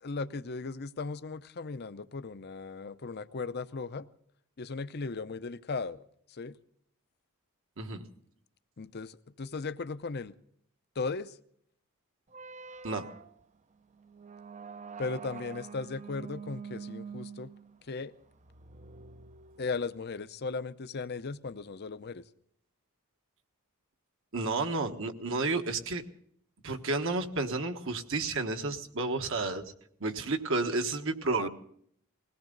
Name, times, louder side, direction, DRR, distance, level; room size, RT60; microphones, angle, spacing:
voice 1, 0.0-4.1 4.6-6.0 6.3-6.6 8.8-10.3 11.0-11.4 15.0-17.5 17.9-18.1 19.6-22.2 31.4-31.5, left 4 dB, 45° left, 14 dB, 0.6 m, -37 dB
sound 1, 12.3-20.1, right 5 dB, 35° right, 0.6 m, -46 dB
voice 2, 24.3-26.0 26.6-29.7 30.0-31.5, right 3 dB, 65° right, 6 dB, 1.4 m, -31 dB
21.0 x 17.5 x 3.9 m, 0.66 s
head